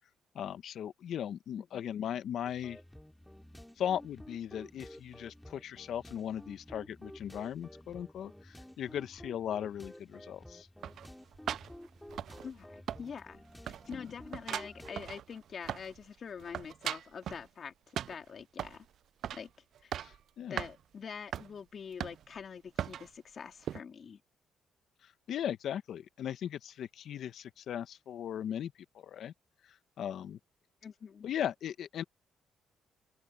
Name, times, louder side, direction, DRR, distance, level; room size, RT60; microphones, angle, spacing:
voice 1, 0.3-2.8 3.8-10.7 13.9-14.0 20.0-20.6 25.0-29.3 29.7-30.4 31.2-32.0, left 9 dB, 70° left, 1.2 m, -38 dB
sound 1, 2.4-15.0, left 1 dB, 5° left, 3.2 m, -52 dB
sound 2, 10.8-12.6 12.9-13.4 13.6-16.0 16.3-17.5 17.9-18.8 19.2-19.5 19.7-20.2 20.6-20.7 21.3-21.5 22.0-22.4 22.8-23.1 23.6-23.8, right 10 dB, 70° right, 0.3 m, -39 dB
voice 2, 12.4-17.7 18.1-18.9 19.3-19.5 19.8-19.9 20.5-24.2 30.8-31.3, left 6 dB, 50° left, 3.7 m, -45 dB
open air
cardioid pair, 90°, 0 cm